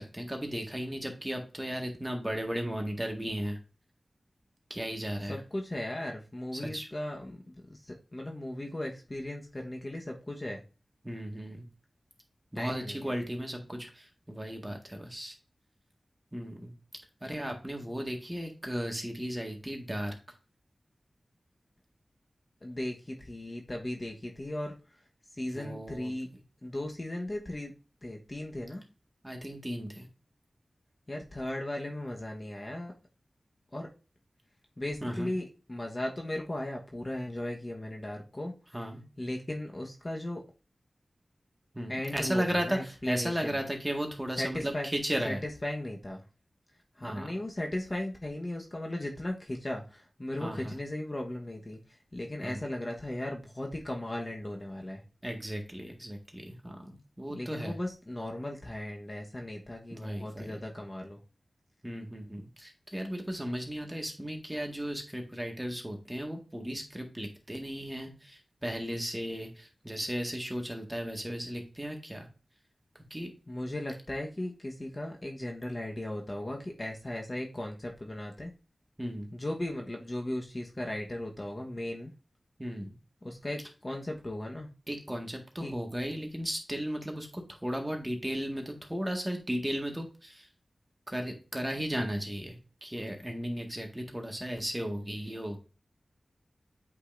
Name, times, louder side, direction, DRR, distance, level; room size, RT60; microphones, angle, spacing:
voice 1, 0.0-3.6 4.7-5.4 6.5-6.9 11.0-11.6 12.5-15.3 16.3-16.7 17.2-20.1 25.5-26.1 29.2-30.1 35.0-35.3 38.7-39.0 41.7-45.4 47.0-47.3 50.4-50.8 52.4-52.6 55.2-57.8 59.9-60.6 61.8-72.3 73.1-73.3 79.0-79.3 82.6-82.9 84.9-90.5 91.1-95.6, equal, 15° right, 2 dB, 1.8 m, -35 dB
voice 2, 5.3-10.6 12.5-13.1 22.6-24.7 25.4-26.3 26.6-27.7 28.0-28.8 31.1-32.9 33.7-33.9 34.8-38.5 39.2-40.4 41.9-43.6 44.4-44.9 45.2-46.2 47.0-51.8 52.1-55.0 57.3-61.2 73.5-78.5 79.3-82.1 83.2-84.7 85.6-85.7, left 1 dB, 30° left, 1 dB, 1.2 m, -37 dB
8.4 x 5.3 x 2.6 m, 0.33 s
wide cardioid pair, 70°, 0 cm